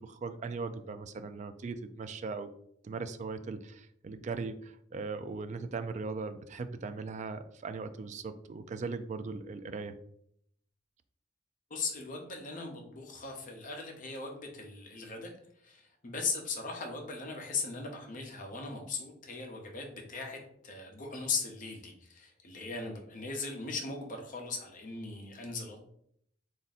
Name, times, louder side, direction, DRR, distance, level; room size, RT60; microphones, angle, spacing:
voice 1, 0.0-2.5 2.8-10.0, right 4 dB, 40° right, 10 dB, 0.3 m, -39 dB
voice 2, 11.7-15.3 15.6-25.9, left 4 dB, 45° left, 3 dB, 0.8 m, -38 dB
3.6 x 2.6 x 4.1 m, 0.68 s
head